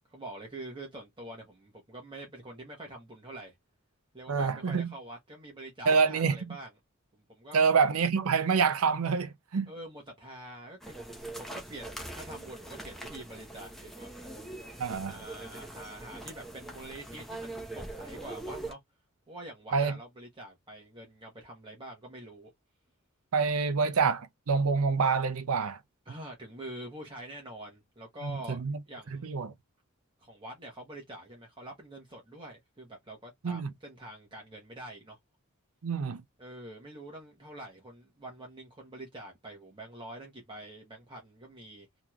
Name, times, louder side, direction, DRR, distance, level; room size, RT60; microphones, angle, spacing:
voice 1, 0.1-3.5 4.1-6.7 7.1-7.6 9.7-14.3 15.1-18.8 19.3-22.5 26.1-29.3 30.2-35.2 36.4-41.9, right 1 dB, 25° right, 1.2 m, -46 dB
voice 2, 4.3-4.9 5.9-6.6 7.5-9.7 14.8-15.2 19.7-20.0 23.3-25.8 28.2-28.8 29.1-29.5 33.4-33.7 35.8-36.2, right 5 dB, 90° right, 0.6 m, -27 dB
sound 1, 10.8-18.7, right 2 dB, ahead, 0.9 m, -42 dB
3.6 x 3.0 x 2.3 m
head